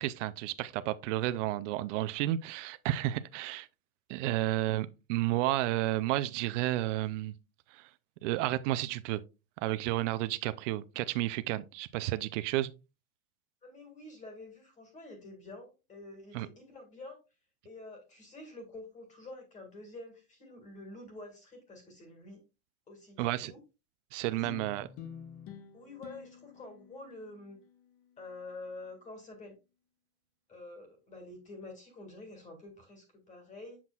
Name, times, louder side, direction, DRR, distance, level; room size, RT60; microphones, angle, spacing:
voice 1, 0.0-3.7 4.1-7.3 7.7-7.9 8.2-9.2 9.6-12.7 16.3-16.5 23.2-23.5 24.1-24.9, right 15 dB, 80° right, 0.6 m, -31 dB
voice 2, 13.6-17.2 17.6-22.4 22.9-23.6 24.3-24.4 25.7-27.6 28.2-29.5 30.5-33.8, left 2 dB, 20° left, 1.9 m, -48 dB
sound 1, 24.4-29.1, left 7 dB, 50° left, 1.1 m, -50 dB
7.3 x 6.0 x 2.3 m
supercardioid pair, 165°, 36 cm